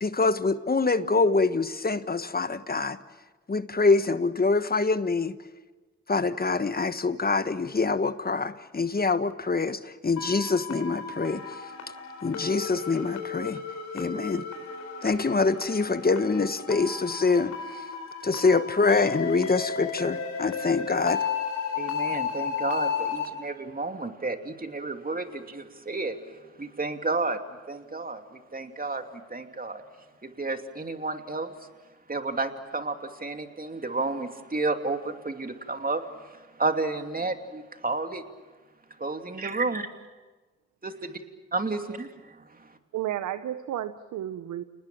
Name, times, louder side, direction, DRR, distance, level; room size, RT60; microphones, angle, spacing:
voice 1, 0.0-3.0 3.5-5.3 6.1-11.4 12.2-13.6 13.9-14.4 15.0-17.5 18.2-21.2, left 4 dB, 30° left, 12 dB, 1.4 m, -25 dB
sound 1, 10.2-23.3, left 6 dB, 75° left, 4.3 m, -34 dB
voice 2, 21.8-26.2 26.6-27.4 27.7-28.2 28.5-29.0 29.3-29.8 30.2-31.5 32.1-36.0 36.6-38.2 39.0-39.9 40.8-41.2 41.5-42.1, right 3 dB, 30° right, 6 dB, 2.8 m, -31 dB
voice 3, 42.9-44.6, right 12 dB, 85° right, 12 dB, 0.9 m, -32 dB
29.0 x 19.5 x 7.7 m, 1.2 s
supercardioid pair, 45°, 29 cm